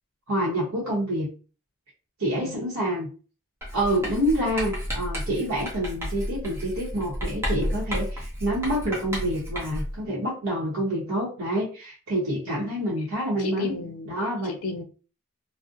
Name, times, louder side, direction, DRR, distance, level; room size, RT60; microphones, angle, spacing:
voice 1, 0.3-1.3 2.2-3.1 3.7-13.8 14.1-14.6, equal, 80° right, 0.8 m, -27 dB
Writing, 3.6-10.0, equal, 10° right, 0.6 m, -32 dB
voice 2, 13.4-14.1 14.4-14.8, left 3 dB, 85° left, 0.5 m, -33 dB
2.5 x 2.0 x 2.5 m
head